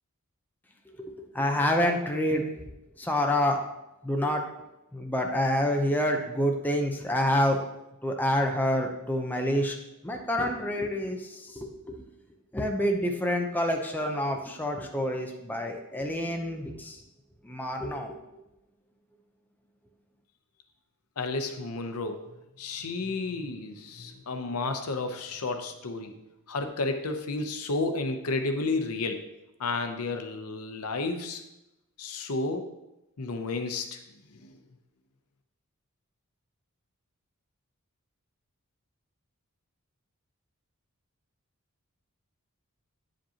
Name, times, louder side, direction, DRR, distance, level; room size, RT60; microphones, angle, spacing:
voice 1, 1.0-2.4 3.0-3.6 4.0-4.4 4.9-7.6 8.0-9.7 10.0-12.0 12.5-17.0 17.4-18.2, left 1 dB, 10° left, 2 dB, 0.6 m, -27 dB
voice 2, 21.2-22.2 22.6-26.1 26.5-29.2 29.6-31.4 32.0-32.7 33.2-34.0 34.3-34.5, left 3 dB, 80° left, 7 dB, 0.7 m, -31 dB
9.1 x 5.1 x 2.8 m, 0.92 s
head